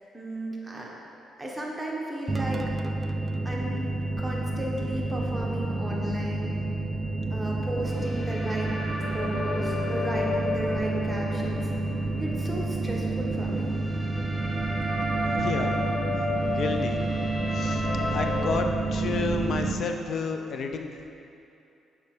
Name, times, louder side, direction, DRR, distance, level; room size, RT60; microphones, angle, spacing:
voice 1, 0.1-0.9 1.4-2.6 3.4-3.8 4.2-6.6 7.3-8.8 9.1-11.7 12.2-13.7, equal, 5° right, -3 dB, 1.4 m, -34 dB
sound 1, 2.3-19.7, right 3 dB, 25° right, 0.4 m, -29 dB
sound 2, 7.8-18.6, left 2 dB, 30° left, 0.9 m, -33 dB
voice 2, 15.2-15.7 16.4-17.0 17.5-21.1, left 5 dB, 60° left, 4 dB, 0.6 m, -31 dB
7.0 x 5.3 x 5.0 m, 2.8 s
cardioid pair, 90°, 0 cm